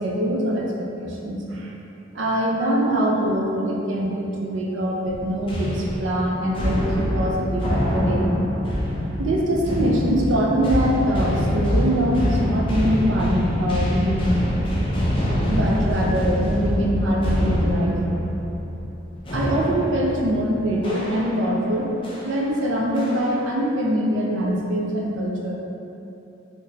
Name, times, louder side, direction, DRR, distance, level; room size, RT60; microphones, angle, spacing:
voice 1, 0.0-1.7 2.1-8.2 9.2-14.3 15.5-18.0 19.3-21.9 22.2-25.5, equal, 85° right, -2 dB, 0.5 m, -23 dB
sound 1, 5.1-21.6 22.0-22.3 23.0-23.5, equal, 30° left, 0.5 m, -25 dB
3.6 x 2.5 x 2.7 m, 2.9 s
head